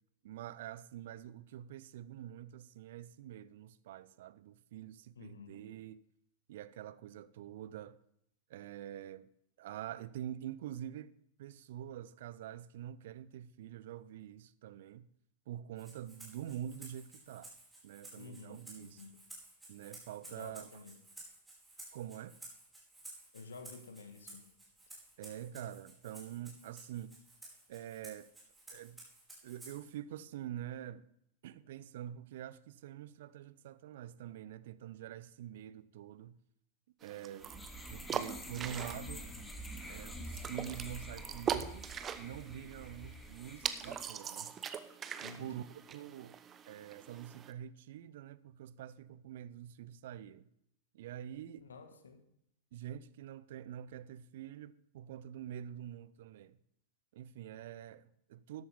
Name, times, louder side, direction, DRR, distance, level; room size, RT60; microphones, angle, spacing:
voice 1, 0.2-6.0 6.5-8.0 8.5-9.3 9.6-15.1 15.5-17.5 17.8-19.0 19.7-20.8 21.9-22.4 25.2-27.2 27.7-28.3 28.7-29.0 29.4-31.1 31.4-36.4 37.0-39.3 39.9-44.5 45.2-46.4 46.7-50.5 50.9-51.7 52.7-56.6 57.1-58.6, right 11 dB, 55° right, 0.5 m, -46 dB
voice 2, 5.1-5.6 18.2-19.2 20.4-20.9 23.3-24.5 45.2-45.6 51.6-52.2, left 4 dB, 70° left, 1.6 m, -51 dB
Rattle (instrument), 15.8-29.9, right 2 dB, 5° right, 5.1 m, -54 dB
sound 1, 37.0-47.5, right 8 dB, 25° right, 0.8 m, -42 dB
sound 2, 37.4-44.1, equal, 10° left, 1.6 m, -47 dB
13.5 x 11.5 x 3.5 m
figure-of-eight pair, 95°, 0 cm